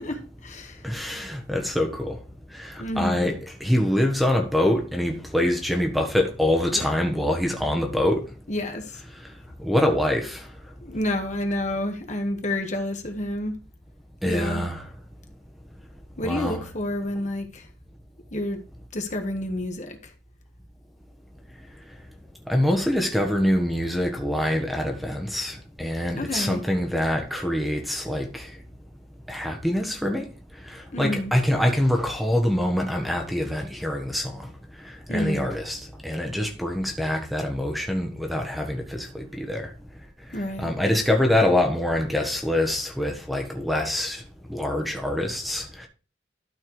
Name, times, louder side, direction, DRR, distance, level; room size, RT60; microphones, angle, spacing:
voice 1, 0.0-0.9 2.8-3.3 6.7-6.9 8.5-9.0 10.8-13.5 14.2-14.6 16.2-17.7 18.3-18.6 18.9-20.1 26.2-26.6 30.9-31.3 35.1-35.5 40.3-40.7, left 1 dB, 40° left, 1.5 m, -29 dB
voice 2, 0.8-2.2 2.5-8.2 9.6-10.4 14.2-14.8 16.2-16.6 22.5-28.5 29.3-30.2 31.0-34.4 35.1-39.6 40.6-44.2 44.5-45.9, left 1 dB, ahead, 1.3 m, -25 dB
12.5 x 4.6 x 4.8 m
head